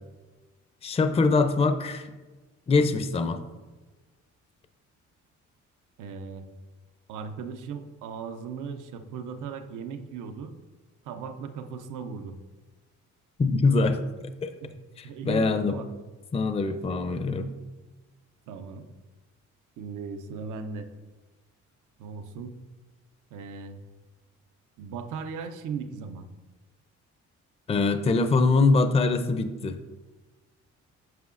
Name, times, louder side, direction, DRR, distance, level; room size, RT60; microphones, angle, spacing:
voice 1, 0.8-2.1 2.7-3.4 13.4-14.0 14.4-14.5 15.0-15.8 16.3-17.5 27.7-29.8, left 3 dB, 20° left, 9 dB, 0.5 m, -23 dB
voice 2, 6.0-6.4 7.1-10.5 11.0-12.4 14.6-14.7 15.0-15.9 18.5-18.9 19.8-20.9 22.0-22.6 23.3-23.8 24.8-26.3, right 5 dB, 85° right, 8 dB, 0.7 m, -37 dB
9.3 x 5.8 x 2.5 m, 1.2 s
cardioid pair, 90°, 30 cm